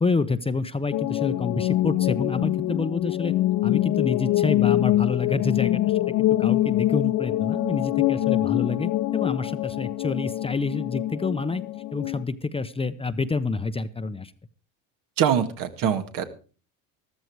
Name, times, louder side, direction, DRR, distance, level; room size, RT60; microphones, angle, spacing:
voice 1, 0.0-3.3 3.6-11.6 11.9-14.3, left 4 dB, 15° left, 11 dB, 0.8 m, -28 dB
sound 1, 0.9-12.2, left 15 dB, 60° left, 1.0 m, -24 dB
voice 2, 15.2-16.3, right 9 dB, 60° right, 8 dB, 2.0 m, -23 dB
14.0 x 13.5 x 4.7 m, 0.38 s
supercardioid pair, 95°, 37 cm